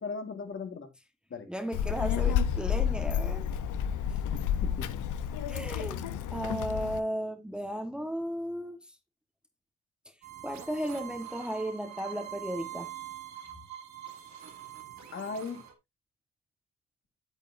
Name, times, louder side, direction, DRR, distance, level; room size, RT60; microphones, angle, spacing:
voice 1, 0.0-0.9 1.3-1.5 4.3-5.0 15.1-15.6, left 4 dB, 40° left, 1.9 m, -38 dB
voice 2, 1.5-3.5 4.1-4.2 5.5-6.0 6.3-8.9 10.4-12.9, equal, 5° right, 1.3 m, -35 dB
Child speech kid speaking, 1.7-7.0, left 8 dB, 80° left, 0.9 m, -30 dB
sound 1, 10.2-15.7, right 12 dB, 65° right, 2.1 m, -44 dB
9.0 x 8.2 x 2.7 m
cardioid pair, 90°, 30 cm